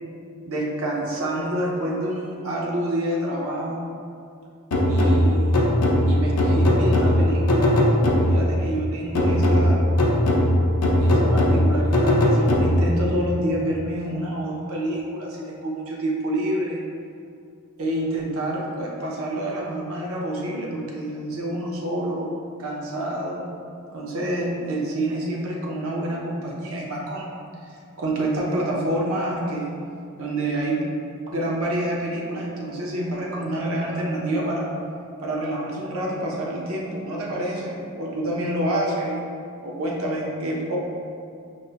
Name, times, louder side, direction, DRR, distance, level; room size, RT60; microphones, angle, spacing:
voice 1, 0.4-3.9 4.9-5.6 6.1-7.8 8.3-9.8 11.0-16.8 17.8-22.3 22.6-23.5 23.9-27.3 28.0-29.7 30.2-30.8 31.3-34.7 35.2-39.2 39.6-40.8, right 1 dB, 65° right, -2 dB, 0.6 m, -27 dB
sound 1, 4.7-8.6 9.1-13.0, left 1 dB, 80° left, 0.5 m, -19 dB
4.8 x 2.1 x 2.8 m, 2.4 s
head